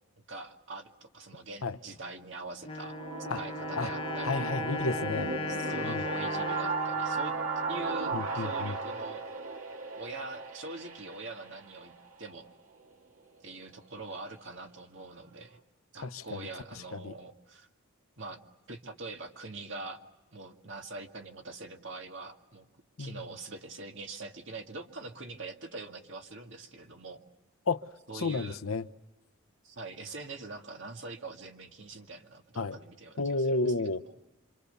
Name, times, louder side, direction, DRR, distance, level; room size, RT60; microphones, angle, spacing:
voice 1, 0.3-3.0 3.4-4.4 5.5-7.3 7.7-9.2 9.9-11.9 12.2-12.5 13.4-15.6 15.9-17.7 18.2-18.4 18.7-20.0 20.3-22.7 23.0-27.2 28.1-28.6 29.6-33.6, right 3 dB, 60° right, 3 dB, 2.1 m, -43 dB
Wind instrument woodwind instrument, 2.6-8.4, left 3 dB, 25° left, 1.4 m, -38 dB
sound 1, 2.6-12.5, right 4 dB, 80° right, 2.0 m, -35 dB
voice 2, 4.2-5.4 5.8-6.1 8.1-8.8 16.0-16.4 16.9-17.1 23.0-23.2 27.7-27.8 28.1-28.9 32.6-32.8 33.2-34.0, left 3 dB, 80° left, 12 dB, 0.9 m, -31 dB
27.5 x 26.0 x 6.8 m, 1.0 s
head